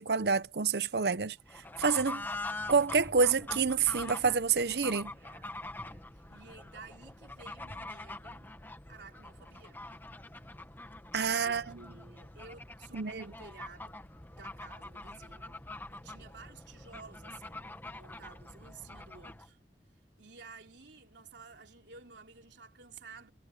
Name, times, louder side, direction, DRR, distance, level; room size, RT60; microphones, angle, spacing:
voice 1, 0.0-1.4 1.8-2.2 2.7-5.1 11.1-11.8 12.9-13.3, right 5 dB, 65° right, 0.7 m, -28 dB
Fowl / Bird, 1.5-19.5, left 2 dB, 10° left, 1.3 m, -45 dB
voice 2, 5.1-5.5 5.8-8.5 8.9-9.8 11.4-15.6 15.9-19.6 20.2-23.3, right 4 dB, 85° right, 3.5 m, -53 dB
head